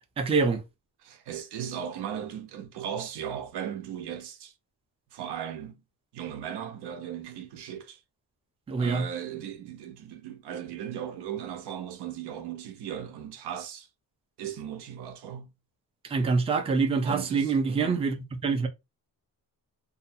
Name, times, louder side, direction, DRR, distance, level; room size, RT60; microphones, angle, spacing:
voice 1, 0.2-0.6 8.7-9.0 16.0-18.7, right 4 dB, 15° right, 0.4 m, -25 dB
voice 2, 1.0-4.5 5.1-5.8 6.1-8.0 8.8-13.9 14.4-15.5 17.0-18.0, right 9 dB, 90° right, 0.7 m, -37 dB
2.5 x 2.2 x 2.6 m
cardioid pair, 140°, 39 cm